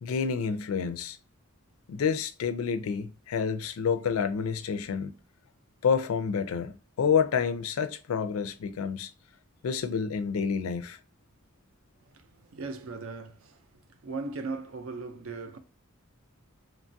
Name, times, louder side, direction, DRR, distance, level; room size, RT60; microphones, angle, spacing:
voice 1, 0.0-1.2 1.9-5.1 5.8-9.1 9.6-11.0, left 6 dB, 75° left, 0.4 m, -28 dB
voice 2, 12.0-15.6, right 3 dB, 65° right, 0.5 m, -39 dB
3.1 x 2.3 x 2.5 m
head